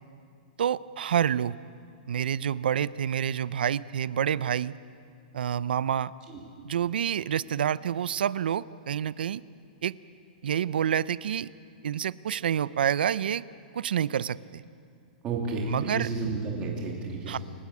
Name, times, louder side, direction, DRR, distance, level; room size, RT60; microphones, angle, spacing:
voice 1, 0.6-1.6 2.1-4.7 5.3-6.1 6.6-9.4 9.8-9.9 10.4-11.5 11.8-13.4 13.7-14.6 15.7-16.1 17.3-17.4, right 9 dB, 75° right, 18 dB, 0.5 m, -28 dB
voice 2, 15.2-17.4, right 3 dB, 15° right, -1 dB, 2.8 m, -31 dB
28.5 x 13.5 x 8.4 m, 2.4 s
hypercardioid pair, 180°, 5 cm